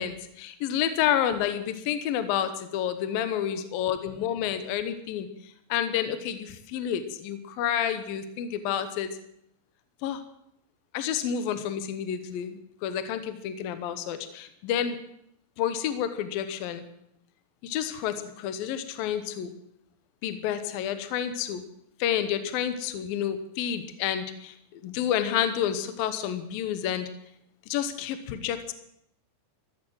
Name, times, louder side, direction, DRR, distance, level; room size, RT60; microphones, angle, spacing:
voice 1, 0.0-5.3 5.7-9.2 10.0-10.2 10.9-15.0 15.6-16.8 17.6-19.5 20.2-21.6 22.0-27.1 27.7-28.7, left 9 dB, 70° left, 10 dB, 2.5 m, -29 dB
15.0 x 14.5 x 6.3 m, 0.77 s
omnidirectional pair, 4.9 m